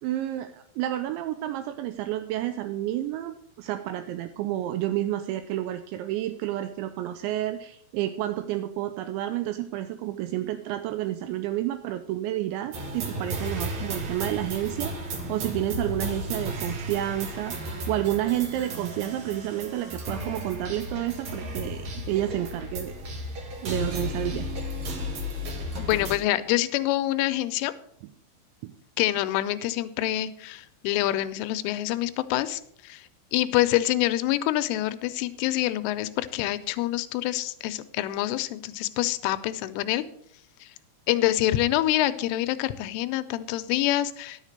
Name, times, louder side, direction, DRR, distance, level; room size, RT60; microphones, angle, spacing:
voice 1, 0.0-23.0 23.6-24.5 28.6-28.7, right 13 dB, 85° right, 9 dB, 2.7 m, -30 dB
sound 1, 12.7-26.2, equal, 65° right, 1.8 m, -34 dB
voice 2, 25.8-27.7 29.0-40.0 40.6-40.7 41.1-44.4, left 15 dB, 85° left, 12 dB, 3.1 m, -26 dB
11.0 x 7.3 x 6.5 m, 0.67 s
omnidirectional pair, 5.7 m